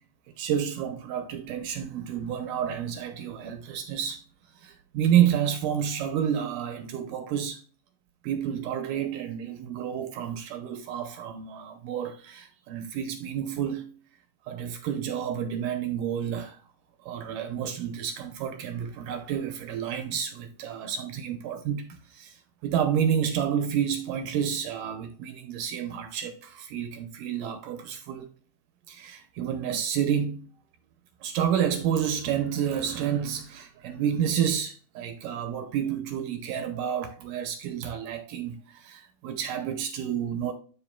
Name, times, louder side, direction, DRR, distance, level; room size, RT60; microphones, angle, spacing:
voice 1, 0.4-4.2 4.6-7.6 8.2-14.0 14.5-16.6 17.0-28.3 28.9-30.5 31.2-40.5, right 9 dB, 75° right, 2.1 m, -29 dB
12.0 x 4.3 x 2.2 m
omnidirectional pair, 4.2 m